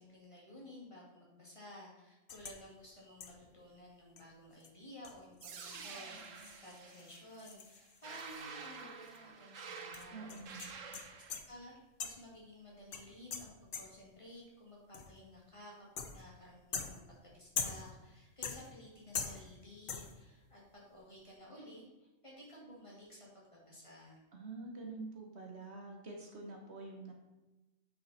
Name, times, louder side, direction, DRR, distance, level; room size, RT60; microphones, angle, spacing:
voice 1, 0.0-10.9 11.5-24.2, left 1 dB, 25° left, -5 dB, 2.5 m, -54 dB
sound 1, 2.3-2.6 3.2-3.5 4.2-4.3 4.6-4.7 5.0-8.8 9.1-9.2 9.9-11.6 12.0-12.4 12.9-14.1 14.9-15.3 16.0-16.4 16.7-18.0 18.4-18.9 19.1-19.6 19.9-20.3, left 6 dB, 55° left, 0.8 m, -44 dB
sound 2, 5.4-11.4, right 5 dB, 85° right, 1.3 m, -49 dB
voice 2, 10.1-10.8 24.3-27.1, right 3 dB, 60° right, 1 dB, 1.5 m, -47 dB
9.0 x 5.5 x 4.2 m, 1.1 s
omnidirectional pair, 1.3 m